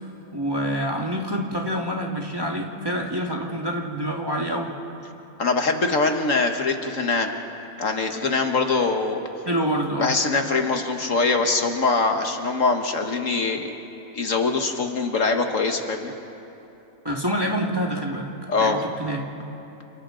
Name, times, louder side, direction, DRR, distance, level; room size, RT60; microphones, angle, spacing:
voice 1, 0.3-4.7 9.4-10.2 17.0-18.3 18.6-19.2, equal, 15° right, -1 dB, 1.7 m, -26 dB
voice 2, 5.4-7.3 7.8-9.2 10.0-13.7 14.1-16.1 18.5-18.8, left 4 dB, 60° left, 4 dB, 1.6 m, -23 dB
29.0 x 28.5 x 3.9 m, 2.9 s
omnidirectional pair, 1.6 m